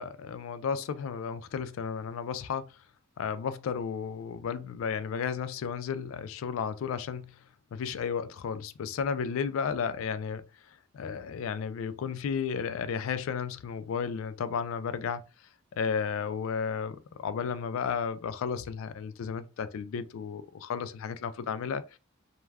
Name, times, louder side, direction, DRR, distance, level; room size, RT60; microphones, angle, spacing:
voice 1, 0.0-2.7 3.2-7.3 7.7-10.4 10.9-15.2 15.8-22.0, left 6 dB, 65° left, 0.3 m, -33 dB
2.3 x 2.2 x 3.2 m
head